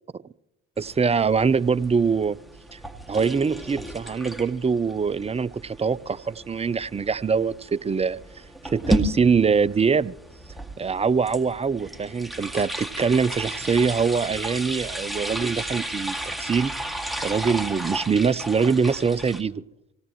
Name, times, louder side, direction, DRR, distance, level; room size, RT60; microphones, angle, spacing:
sound 1, 0.8-19.4, right 1 dB, ahead, 2.2 m, -33 dB
voice 1, 0.8-2.4 2.7-2.8 3.1-10.2 10.8-16.7 17.2-19.6, right 5 dB, 20° right, 18 dB, 0.5 m, -23 dB
24.5 x 17.5 x 3.1 m, 0.86 s
hypercardioid pair, 55°, 34 cm